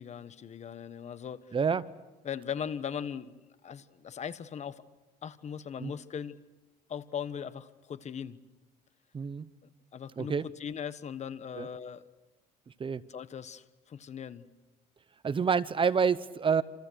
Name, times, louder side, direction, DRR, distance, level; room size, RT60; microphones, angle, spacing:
voice 1, 0.0-1.6 2.2-3.3 3.6-4.8 5.2-6.4 6.9-8.4 9.9-12.1 13.1-14.4, left 8 dB, 40° left, 14 dB, 1.2 m, -39 dB
voice 2, 1.5-1.9 5.8-5.9 9.1-9.5 10.2-10.4 11.6-11.7 12.8-13.0 15.2-16.6, right 6 dB, 30° right, 16 dB, 0.9 m, -27 dB
27.5 x 27.5 x 6.4 m, 1.1 s
cardioid pair, 110°, 17 cm